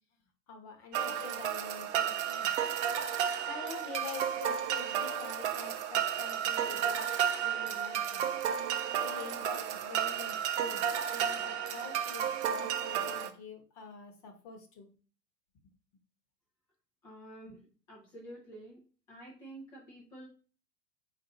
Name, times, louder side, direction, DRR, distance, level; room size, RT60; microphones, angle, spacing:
voice 1, 0.5-2.5 3.5-7.1 7.4-8.3 8.9-14.9 17.5-17.6, left 5 dB, 30° left, 4 dB, 1.1 m, -46 dB
sound 1, 0.9-13.3, right 9 dB, 45° right, 0.6 m, -32 dB
voice 2, 17.0-17.6 17.9-18.8 19.1-20.3, right 1 dB, 10° left, -4 dB, 0.4 m, -49 dB
4.3 x 2.5 x 4.1 m, 0.38 s
figure-of-eight pair, 100°, 49 cm